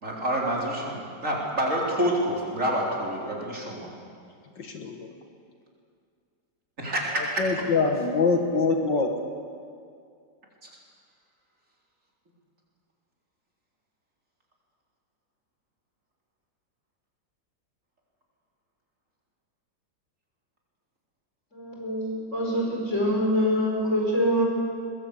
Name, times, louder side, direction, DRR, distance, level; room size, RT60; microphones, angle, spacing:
voice 1, 0.0-3.9 6.8-7.6 10.6-10.7, right 1 dB, 40° right, -3 dB, 4.3 m, -28 dB
voice 2, 4.6-5.1 7.2-9.1, left 4 dB, 70° left, 4 dB, 2.2 m, -24 dB
voice 3, 21.5-24.4, equal, 40° left, -1 dB, 5.7 m, -25 dB
22.0 x 21.5 x 8.4 m, 2.3 s
omnidirectional pair, 2.0 m